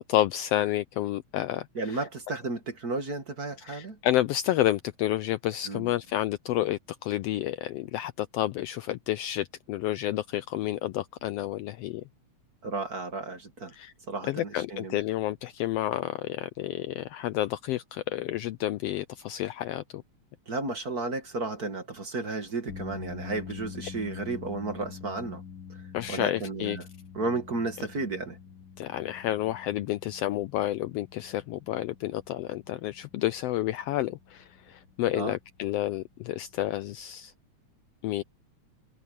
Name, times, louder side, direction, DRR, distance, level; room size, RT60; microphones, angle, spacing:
voice 1, 0.0-2.0 3.7-12.0 13.7-13.9 14.2-20.0 25.9-26.8 28.8-37.3 38.0-38.2, left 14 dB, 90° left, 1.4 m, -30 dB
voice 2, 1.8-4.0 5.6-5.9 12.6-13.7 14.1-15.0 20.5-25.4 26.1-26.9 27.1-28.4 35.1-35.4, right 3 dB, 35° right, 2.0 m, -33 dB
sound 1, 22.7-37.0, left 7 dB, 45° left, 2.3 m, -46 dB
omnidirectional pair, 3.3 m